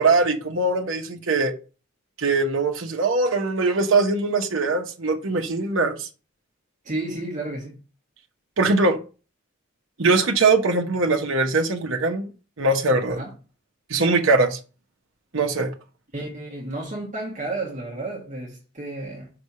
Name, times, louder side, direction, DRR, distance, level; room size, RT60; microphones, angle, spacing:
voice 1, 0.0-1.5 2.2-6.1 8.6-9.0 10.0-12.3 12.6-13.2 13.9-14.6 15.3-15.7, right 3 dB, 70° right, 0.9 m, -21 dB
voice 2, 6.8-7.8 13.1-13.3 16.1-19.3, right 2 dB, 35° right, 1.3 m, -32 dB
5.8 x 3.3 x 5.5 m
head